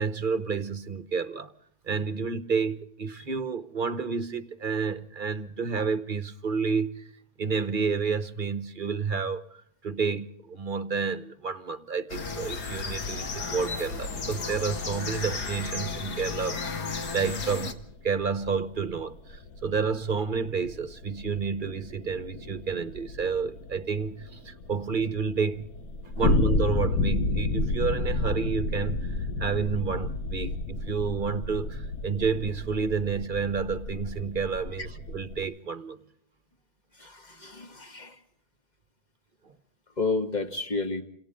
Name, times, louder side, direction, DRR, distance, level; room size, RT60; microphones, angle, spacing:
voice 1, 0.0-1.5 1.8-7.0 7.4-17.8 18.0-25.7 26.1-36.0, right 5 dB, 35° right, 1.2 m, -30 dB
sound 1, 12.1-17.7, left 4 dB, 80° left, 2.3 m, -33 dB
sound 2, 17.3-35.4, left 2 dB, 65° left, 1.9 m, -32 dB
voice 2, 37.0-38.2 40.0-41.0, left 3 dB, 25° left, 2.0 m, -30 dB
29.5 x 27.0 x 3.8 m
omnidirectional pair, 1.7 m